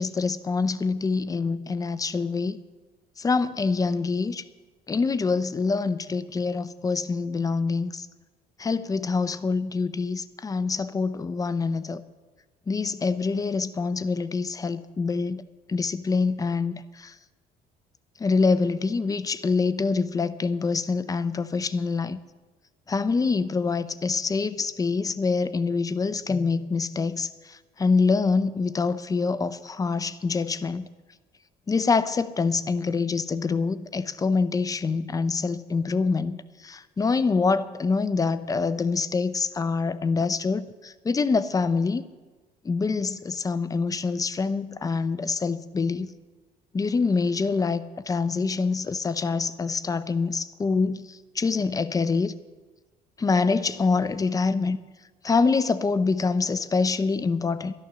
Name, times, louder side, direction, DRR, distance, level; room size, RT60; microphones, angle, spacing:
voice 1, 0.0-2.6 3.2-4.5 4.9-8.1 8.6-12.0 12.7-15.4 15.7-17.1 18.2-22.2 22.9-30.9 31.7-42.0 42.6-46.1 46.7-52.3 53.2-54.8 55.2-57.7, left 4 dB, 20° left, 14 dB, 0.6 m, -25 dB
12.0 x 11.0 x 6.8 m, 1.3 s
cardioid pair, 110°, 17 cm